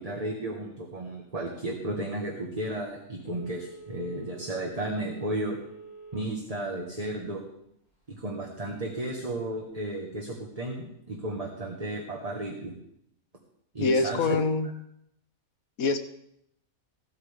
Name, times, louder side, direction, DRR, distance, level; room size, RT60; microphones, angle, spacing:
voice 1, 0.0-5.6 6.1-7.4 8.1-12.7 13.7-14.4, right 1 dB, 25° right, 0 dB, 1.5 m, -33 dB
Telephone, 3.2-6.3 6.7-6.8, right 3 dB, 50° left, 5.4 m, -46 dB
voice 2, 13.8-14.7 15.8-16.0, left 3 dB, 75° left, 9 dB, 1.4 m, -24 dB
16.5 x 12.5 x 3.6 m, 0.74 s
omnidirectional pair, 1.5 m